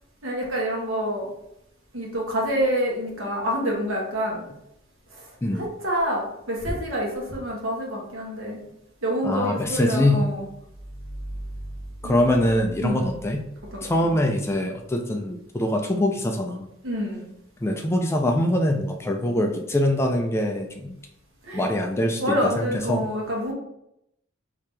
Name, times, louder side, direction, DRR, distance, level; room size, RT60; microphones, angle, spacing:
voice 1, 0.2-1.3 1.9-4.4 5.1-5.3 5.5-8.6 9.0-10.5 12.0-12.5 12.8-13.1 13.7-14.2 16.8-17.3 21.4-21.7 22.2-23.5, equal, 80° right, -2 dB, 1.2 m, -27 dB
voice 2, 9.2-10.2 12.0-13.4 13.8-16.7 17.6-21.0 21.5-23.0, left 1 dB, 15° left, 3 dB, 0.3 m, -23 dB
sound 1, 10.4-14.9, right 1 dB, 40° right, 1.2 m, -40 dB
3.5 x 2.8 x 3.2 m, 0.79 s
head